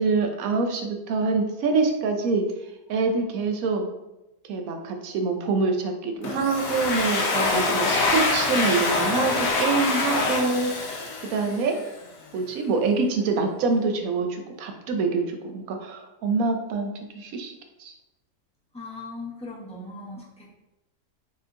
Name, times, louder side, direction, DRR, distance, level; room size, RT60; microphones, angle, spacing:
voice 1, 0.0-2.4 2.9-3.9 4.5-11.8 12.3-17.5 17.8-17.9, right 4 dB, 70° right, 4 dB, 1.0 m, -25 dB
Domestic sounds home sounds, 6.2-11.9, left 3 dB, 65° left, 1.1 m, -25 dB
voice 2, 18.7-20.6, left 2 dB, 5° left, -7 dB, 0.6 m, -39 dB
4.4 x 3.3 x 2.5 m, 0.95 s
omnidirectional pair, 1.7 m